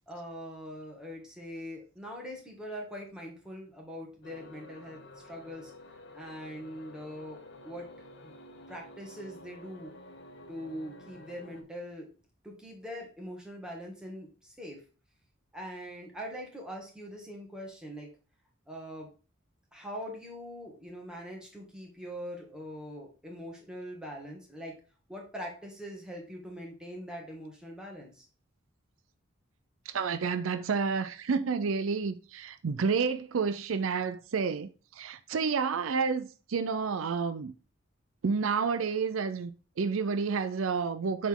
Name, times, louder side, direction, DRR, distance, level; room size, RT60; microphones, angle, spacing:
voice 1, 0.1-5.0 5.2-5.7 6.1-7.9 8.2-8.3 8.7-9.9 10.5-12.1 12.4-14.8 15.5-18.1 18.7-19.1 19.7-24.8 25.1-28.3, equal, 5° right, 1.9 m, -42 dB
sound 1, 4.2-11.6, left 1 dB, 60° left, 1.0 m, -51 dB
voice 2, 29.9-34.7 35.0-37.5 38.2-39.5 39.8-41.3, right 5 dB, 80° right, 0.5 m, -30 dB
7.1 x 4.2 x 3.7 m
head